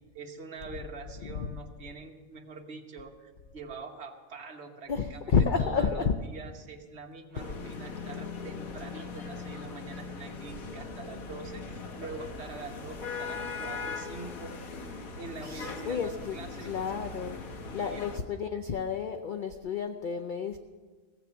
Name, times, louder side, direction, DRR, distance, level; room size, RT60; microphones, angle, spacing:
voice 1, 0.1-14.5 15.2-16.7 17.8-18.0, right 4 dB, 50° right, 3 dB, 1.3 m, -44 dB
voice 2, 1.2-1.5 4.9-6.2 7.4-7.5 15.4-17.4 17.7-20.6, left 6 dB, 55° left, 6 dB, 0.5 m, -30 dB
sound 1, 7.3-18.2, left 4 dB, 80° left, 1.5 m, -40 dB
sound 2, 9.5-9.8 10.3-11.8, right 5 dB, 85° right, 1.3 m, -51 dB
16.0 x 7.7 x 7.0 m, 1.4 s
omnidirectional pair, 1.5 m